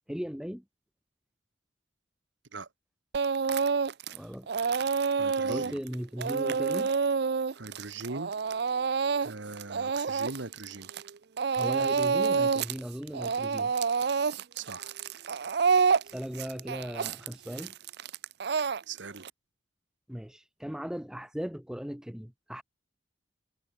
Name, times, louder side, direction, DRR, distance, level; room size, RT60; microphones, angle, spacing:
voice 1, 0.1-0.6 4.1-4.5 5.5-6.9 11.6-13.7 16.0-17.7 20.1-22.6, equal, 5° right, 0.7 m, -37 dB
Speech / Crying sobbing, 3.1-4.2 4.5-11.1 11.4-12.8 13.1-19.3, right 5 dB, 60° right, 0.5 m, -28 dB
voice 2, 5.2-5.8 7.5-8.3 9.2-10.9 14.5-14.9 18.9-19.3, right 3 dB, 80° right, 1.6 m, -40 dB
head